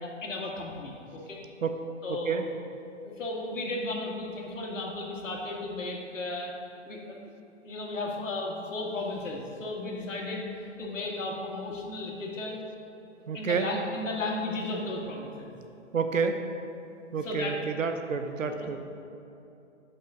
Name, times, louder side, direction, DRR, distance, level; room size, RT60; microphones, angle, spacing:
voice 1, 0.0-1.4 2.0-2.4 3.0-6.5 6.9-7.2 7.6-12.6 13.3-15.6 17.2-17.6 18.5-18.8, left 2 dB, 75° left, -1 dB, 2.1 m, -35 dB
voice 2, 1.6-2.5 13.3-13.7 15.9-16.4 17.1-18.8, right 5 dB, 85° right, 7 dB, 1.0 m, -29 dB
8.6 x 5.5 x 6.0 m, 2.8 s
hypercardioid pair, 150°, 38 cm